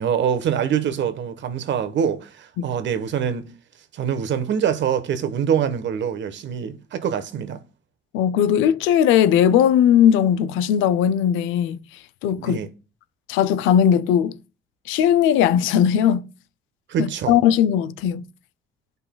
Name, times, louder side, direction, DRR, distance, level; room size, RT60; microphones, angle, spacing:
voice 1, 0.0-3.5 3.9-7.6 12.4-12.7 16.9-17.4, right 8 dB, 70° right, 1.1 m, -24 dB
voice 2, 8.1-11.8 12.2-12.6 13.3-14.3 14.9-16.3 17.0-18.2, left 9 dB, 90° left, 0.5 m, -18 dB
11.5 x 5.4 x 2.2 m
supercardioid pair, 65°, 20 cm